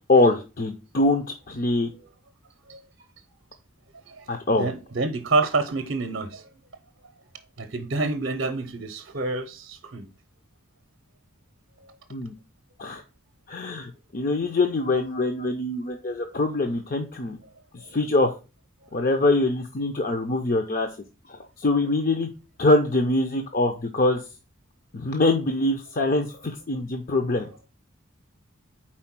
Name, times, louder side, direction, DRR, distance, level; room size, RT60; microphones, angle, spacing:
voice 1, 0.1-1.9 4.3-4.7 12.1-12.3 12.8-13.0 13.5-17.4 17.9-18.4 18.9-20.9 21.3-22.3 22.6-24.2 24.9-27.5, left 2 dB, 40° left, 0.6 m, -23 dB
voice 2, 4.6-6.5 7.6-10.1, right 3 dB, 55° right, 0.6 m, -27 dB
4.4 x 4.4 x 5.8 m
head